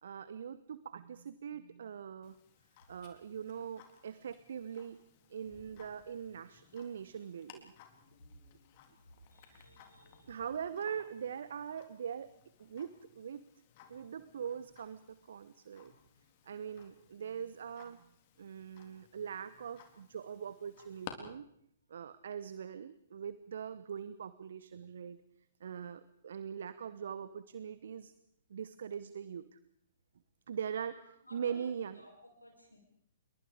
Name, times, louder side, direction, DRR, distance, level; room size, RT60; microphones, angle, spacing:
voice 1, 0.0-2.4 2.9-5.0 5.3-7.7 9.5-9.7 10.2-12.3 12.6-13.4 13.9-15.9 16.5-18.0 18.4-21.5 21.9-25.2 25.6-28.1 28.5-29.6 30.5-32.0, right 7 dB, 60° right, 15 dB, 1.0 m, -42 dB
Tick-tock, 2.2-21.1, left 12 dB, 40° left, 4.0 m, -59 dB
voice 2, 9.0-10.3 30.8-31.7 32.0-32.8, equal, 90° left, 2 dB, 6.3 m, -58 dB
28.5 x 23.5 x 5.1 m, 0.73 s
figure-of-eight pair, 120°, 0 cm